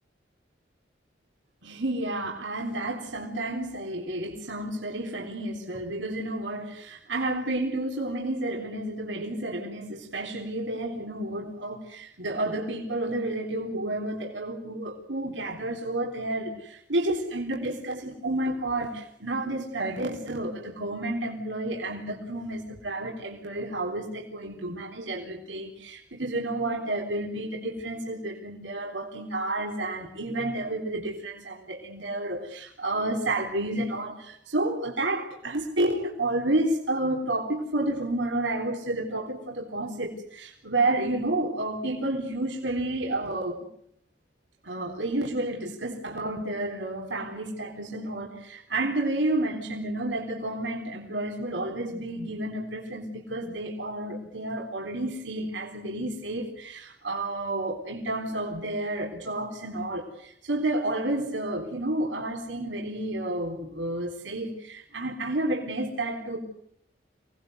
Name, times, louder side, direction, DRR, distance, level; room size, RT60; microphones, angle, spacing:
voice 1, 1.6-43.7 44.6-66.4, right 1 dB, 90° right, 1 dB, 3.8 m, -30 dB
27.0 x 19.5 x 8.0 m, 0.73 s
head